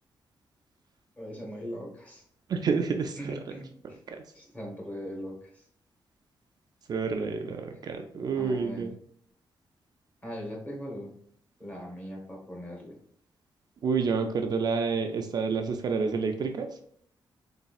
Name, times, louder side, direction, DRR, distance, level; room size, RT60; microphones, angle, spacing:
voice 1, 1.2-2.2 3.2-4.0 4.3-5.6 8.4-8.9 10.2-11.1 11.6-13.0, equal, 15° left, -1 dB, 1.1 m, -40 dB
voice 2, 2.5-3.2 4.1-4.2 6.9-8.9 13.8-16.7, right 5 dB, 50° right, 5 dB, 0.3 m, -28 dB
4.0 x 3.3 x 2.3 m, 0.64 s
wide cardioid pair, 140°, 8 cm